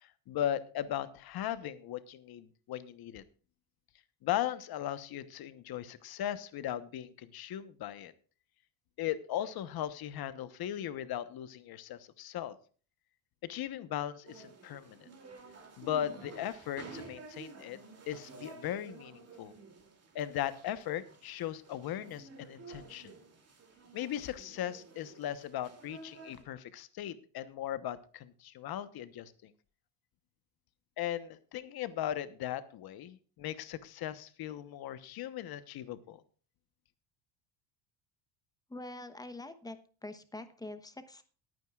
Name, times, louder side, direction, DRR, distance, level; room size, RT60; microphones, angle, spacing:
voice 1, 0.0-3.2 4.2-8.1 9.0-12.5 13.4-15.1 15.8-17.8 18.1-19.5 20.1-23.1 23.9-29.5 31.0-36.2, left 11 dB, 50° left, 13 dB, 1.1 m, -38 dB
sound 1, 14.3-26.4, right 4 dB, 30° right, 2.8 m, -52 dB
voice 2, 38.7-39.8 40.0-41.2, left 2 dB, 10° left, 10 dB, 1.0 m, -44 dB
20.0 x 9.2 x 2.4 m, 0.40 s
cardioid pair, 145°, 49 cm